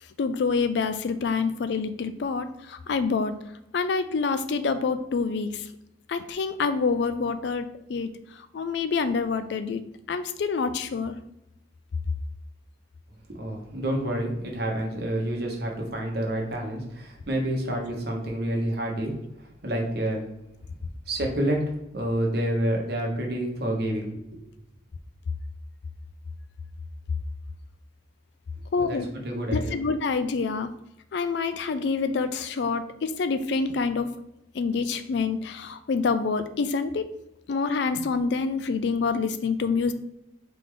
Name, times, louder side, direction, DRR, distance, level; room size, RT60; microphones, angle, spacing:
voice 1, 0.2-3.4 3.7-5.7 6.1-11.2 28.7-29.1 29.5-30.7 31.1-34.1 34.5-37.1 37.5-39.9, left 4 dB, 65° left, 11 dB, 0.3 m, -27 dB
voice 2, 13.3-20.3 21.1-24.4 28.8-29.0 29.2-29.8, right 1 dB, 55° right, 0 dB, 1.0 m, -28 dB
3.9 x 3.3 x 3.7 m, 0.87 s
head